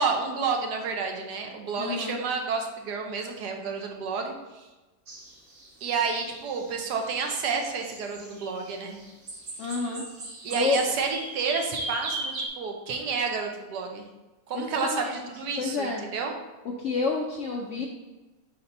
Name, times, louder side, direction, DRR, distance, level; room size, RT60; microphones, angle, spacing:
voice 1, 0.0-4.7 5.8-9.0 10.4-14.0 14.5-16.3, right 5 dB, 75° right, 3 dB, 1.4 m, -30 dB
voice 2, 1.8-2.2 9.6-10.0 10.5-10.8 14.5-15.1 15.6-16.0 16.6-17.9, left 4 dB, 70° left, 0 dB, 0.7 m, -29 dB
sound 1, 5.1-12.5, right 2 dB, 50° right, 1.2 m, -38 dB
4.3 x 4.1 x 5.3 m, 1.2 s
omnidirectional pair, 1.9 m